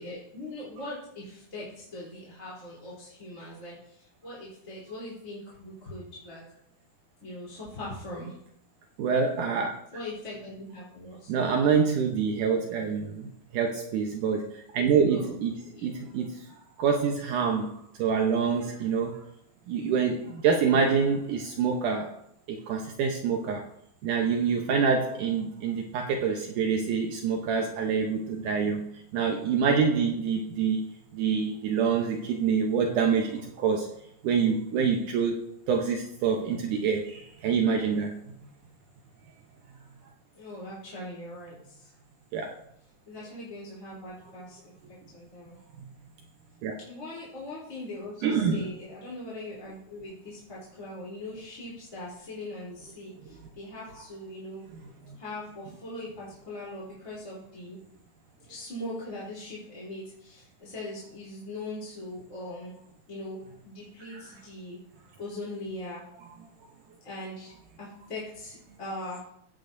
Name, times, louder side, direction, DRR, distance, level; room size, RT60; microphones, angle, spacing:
voice 1, 0.0-6.6 7.2-8.4 9.9-11.3 15.1-15.4 15.6-15.9 40.3-41.9 43.1-45.6 46.8-54.6 55.2-57.8 58.4-62.7 63.1-64.8 65.2-66.0 67.0-67.5 67.8-69.2, left 1 dB, 25° left, -8 dB, 3.5 m, -41 dB
voice 2, 9.0-9.7 11.3-15.6 15.8-16.4 16.8-19.2 19.7-22.1 22.5-23.7 24.0-30.8 31.1-33.9 34.2-38.1 42.3-42.5 46.6-46.7 48.2-48.7 55.1-55.2 64.1-64.2, right 6 dB, 75° right, 2 dB, 2.3 m, -26 dB
16.0 x 8.5 x 2.6 m, 0.72 s
omnidirectional pair, 3.9 m